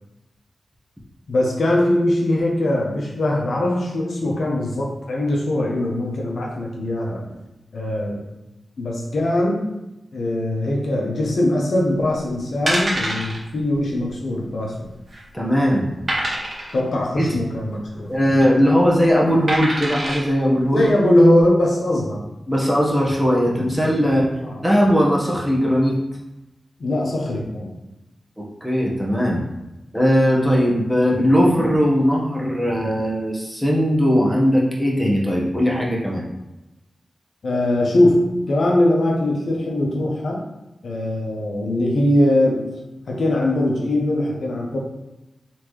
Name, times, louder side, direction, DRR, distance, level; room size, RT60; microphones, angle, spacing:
voice 1, 1.3-7.3 7.7-8.2 8.8-9.7 10.1-14.9 16.7-18.2 20.7-22.2 24.4-24.6 26.8-27.7 37.4-40.4 40.8-42.8 43.1-44.8, left 1 dB, 75° left, -2 dB, 1.0 m, -21 dB
sound 1, 12.0-12.2 12.7-13.4 13.7-13.9 14.1-14.2 14.8-15.3 16.1-16.8 18.1-18.5 19.5-20.2 20.8-20.9, right 1 dB, 50° right, 1.6 m, -25 dB
voice 2, 15.3-15.9 17.2-17.3 18.1-20.8 22.5-24.3 24.6-26.0 28.4-29.4 29.9-36.2, equal, ahead, -4 dB, 1.4 m, -19 dB
4.3 x 3.6 x 3.2 m, 0.96 s
cardioid pair, 55°, 0 cm